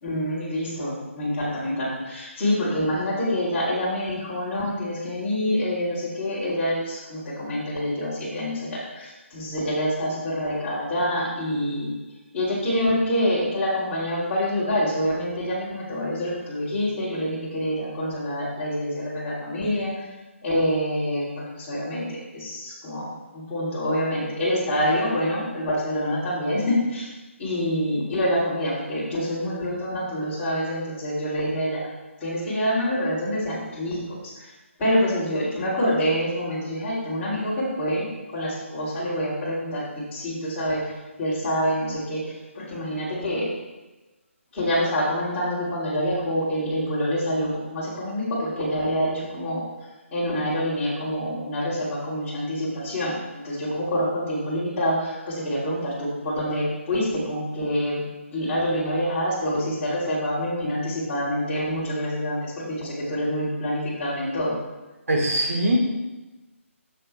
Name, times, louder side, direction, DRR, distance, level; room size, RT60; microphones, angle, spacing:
voice 1, 0.0-11.9 12.3-20.1 20.4-27.1 27.4-31.9 32.2-34.5 34.8-40.9 41.2-42.2 42.5-43.5 44.5-49.6 50.1-58.0 58.3-64.6, equal, 15° left, -10 dB, 3.1 m, -26 dB
voice 2, 65.1-65.8, right 1 dB, 90° right, -1 dB, 2.4 m, -21 dB
10.5 x 7.3 x 3.3 m, 1.1 s
hypercardioid pair, 165°, 7 cm